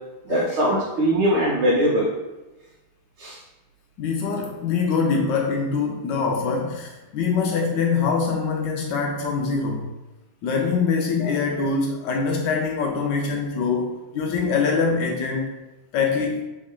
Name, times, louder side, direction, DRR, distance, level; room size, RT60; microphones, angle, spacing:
voice 1, 0.2-2.1 3.2-3.4, equal, 80° right, -5 dB, 1.6 m, -21 dB
voice 2, 4.0-9.9 10.4-15.5 15.9-16.4, left 5 dB, 75° left, 0 dB, 1.0 m, -24 dB
3.6 x 3.2 x 3.6 m, 1.1 s
omnidirectional pair, 2.4 m